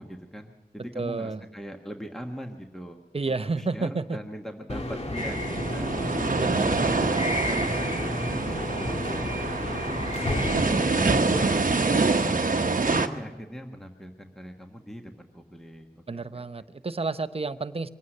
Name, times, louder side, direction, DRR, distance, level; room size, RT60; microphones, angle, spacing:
voice 1, 0.0-3.0 3.3-6.0 6.5-9.6 10.0-12.2 12.8-16.5, equal, 5° left, 3 dB, 1.4 m, -41 dB
voice 2, 0.9-1.4 3.1-4.2 6.3-6.9 16.1-17.9, right 3 dB, 35° right, 12 dB, 0.7 m, -30 dB
sound 1, 4.7-11.6, left 1 dB, 40° left, 1.8 m, -31 dB
sound 2, 5.2-13.1, right 3 dB, 55° right, 1.0 m, -26 dB
22.5 x 9.4 x 6.6 m, 1.1 s
cardioid pair, 40°, 16 cm